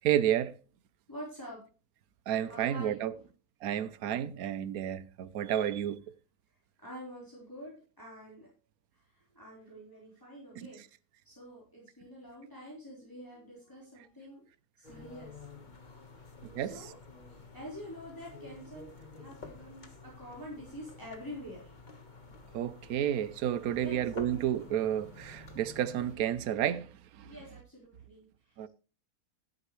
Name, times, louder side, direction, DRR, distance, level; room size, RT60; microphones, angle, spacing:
voice 1, 0.0-0.6 2.3-3.1 3.6-6.0 10.6-10.7 16.5-16.9 22.5-27.3 28.6-28.7, right 10 dB, 85° right, 1.2 m, -31 dB
voice 2, 1.1-1.6 2.5-3.2 6.8-8.5 8.9-10.8 11.2-14.4 14.8-15.7 16.2-17.0 17.3-21.7 23.8-24.1 27.2-28.7, equal, 15° left, 4.3 m, -47 dB
sound 1, 14.8-26.2, left 3 dB, 35° left, 1.6 m, -50 dB
13.0 x 10.0 x 3.2 m
omnidirectional pair, 1.5 m